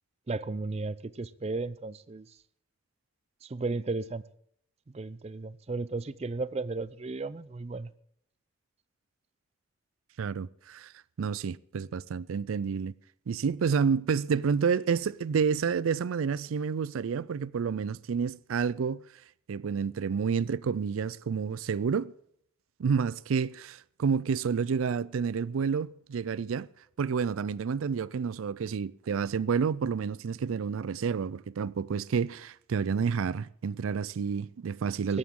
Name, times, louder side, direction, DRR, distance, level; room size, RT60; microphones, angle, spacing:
voice 1, 0.3-2.3 3.4-4.2 4.9-7.9 35.1-35.2, right 3 dB, 30° right, 0.4 m, -34 dB
voice 2, 10.2-10.9 11.2-12.9 13.3-19.0 19.5-22.1 22.8-26.7 27.0-35.2, right 6 dB, 90° right, 0.4 m, -29 dB
16.5 x 13.0 x 3.7 m
head